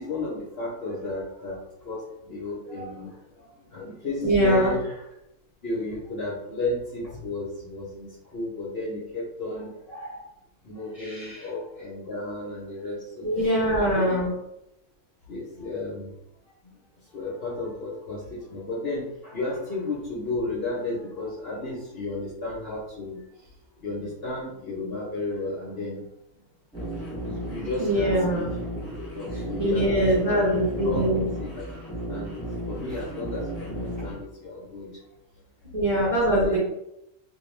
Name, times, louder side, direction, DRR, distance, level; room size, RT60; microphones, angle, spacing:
voice 1, 0.0-5.0 5.6-10.3 10.6-13.4 13.7-14.3 15.3-16.1 17.1-23.5 23.8-26.0 27.2-28.5 29.1-30.5 30.8-31.1 31.4-31.8 32.1-35.0 35.9-36.6, left 2 dB, 60° left, -6 dB, 0.7 m, -33 dB
voice 2, 4.2-4.7 11.0-11.4 13.2-14.3 27.8-28.4 29.6-31.2 35.7-36.6, right 1 dB, 35° right, -8 dB, 0.6 m, -23 dB
sound 1, 26.7-34.1, right 1 dB, 5° right, 0.9 m, -34 dB
2.4 x 2.2 x 3.0 m, 0.84 s
omnidirectional pair, 1.6 m